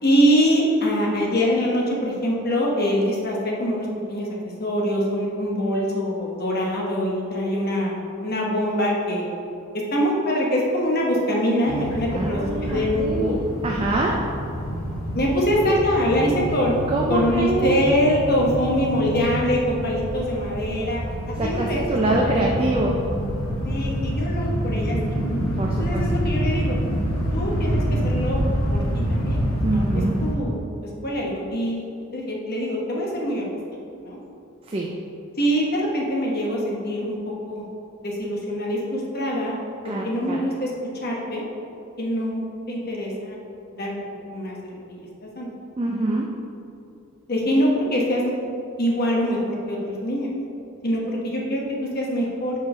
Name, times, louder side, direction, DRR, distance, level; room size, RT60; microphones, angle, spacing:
voice 1, 0.0-4.3 4.6-9.3 9.9-13.3 15.1-16.7 17.1-22.4 23.6-25.2 25.8-26.8 27.3-28.4 28.7-28.8 29.1-29.4 29.7-29.8 30.2-30.6 31.0-31.9 32.1-33.5 34.0-34.2 35.4-37.2 37.4-37.6 38.0-39.6 39.8-41.5 42.0-43.4 43.8-45.5 47.3-48.3 48.8-50.3 50.8-51.6 51.9-52.5, equal, 45° left, -2 dB, 1.1 m, -24 dB
sound 1, 11.7-30.3, equal, 65° left, 1.2 m, -27 dB
voice 2, 12.1-13.4 13.6-14.3 16.9-17.8 21.4-23.1 25.5-26.1 29.6-30.2 34.6-35.0 39.8-40.5 45.8-46.4, right 2 dB, 25° right, -1 dB, 0.4 m, -25 dB
5.6 x 4.6 x 4.9 m, 2.7 s
head